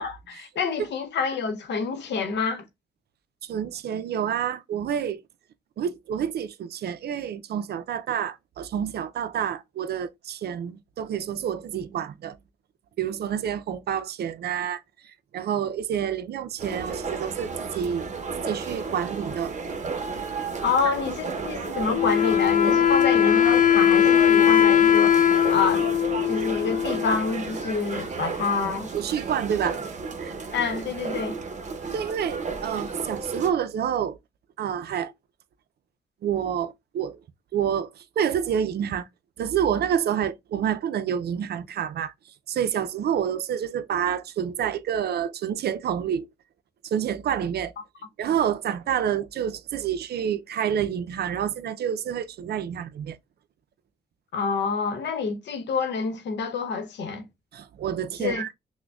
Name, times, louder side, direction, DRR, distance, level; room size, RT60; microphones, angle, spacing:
voice 1, 0.0-2.7 20.6-25.9 26.3-28.9 30.5-31.4 54.3-57.3 58.2-58.4, left 5 dB, 75° left, 0.8 m, -27 dB
voice 2, 3.4-5.2 5.8-12.4 13.0-14.8 15.3-18.0 18.5-19.5 28.9-29.8 30.2-30.3 31.9-34.2 34.6-35.1 36.2-37.2 37.5-39.1 39.4-42.1 42.5-46.3 46.8-47.7 48.2-53.2 57.5-58.5, right 9 dB, 65° right, 0.4 m, -28 dB
sound 1, 16.6-33.5, right 4 dB, 40° right, 0.8 m, -33 dB
Wind instrument woodwind instrument, 21.9-27.4, left 9 dB, 45° left, 0.4 m, -20 dB
5.9 x 2.1 x 2.3 m
cardioid pair, 70°, 18 cm